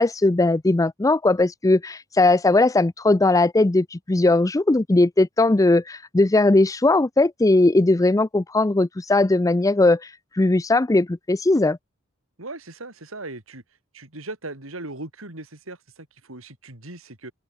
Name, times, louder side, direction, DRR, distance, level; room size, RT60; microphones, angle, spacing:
voice 1, 0.0-10.0 10.4-11.8, left 2 dB, 15° left, 0.5 m, -19 dB
voice 2, 12.4-13.6 13.9-17.3, right 2 dB, 75° right, 4.3 m, -38 dB
open air
head